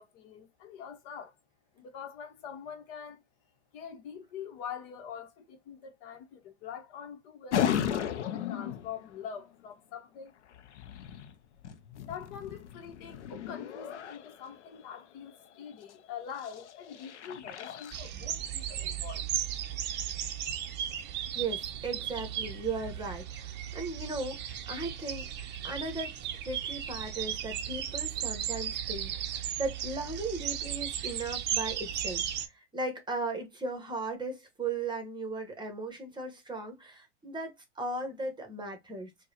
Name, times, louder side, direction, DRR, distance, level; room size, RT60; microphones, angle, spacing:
voice 1, 0.0-1.3 1.7-3.2 3.7-8.1 8.5-10.3 12.1-19.3, left 7 dB, 55° left, 1.1 m, -44 dB
sound 1, 7.5-9.1 10.5-14.9 15.7-15.9 16.3-18.0, left 9 dB, 75° left, 0.6 m, -35 dB
sound 2, 17.9-32.5, right 10 dB, 30° right, 0.6 m, -36 dB
voice 2, 21.3-26.1 26.4-39.1, right 3 dB, 15° right, 1.2 m, -37 dB
4.6 x 2.4 x 2.8 m
hypercardioid pair, 95°, 35 cm